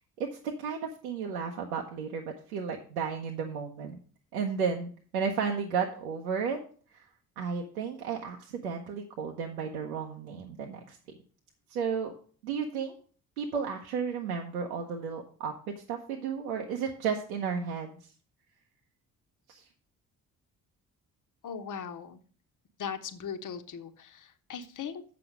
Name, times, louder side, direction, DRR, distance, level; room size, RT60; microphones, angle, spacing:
voice 1, 0.2-4.0 4.3-6.6 6.9-7.1 7.4-11.0 11.7-12.1 12.4-12.9 13.4-17.9 19.5-19.6, right 6 dB, 90° right, 1 dB, 0.8 m, -33 dB
voice 2, 21.4-22.2 22.8-25.0, left 7 dB, 45° left, 8 dB, 1.1 m, -39 dB
7.6 x 6.1 x 6.1 m, 0.43 s
hypercardioid pair, 45°, 42 cm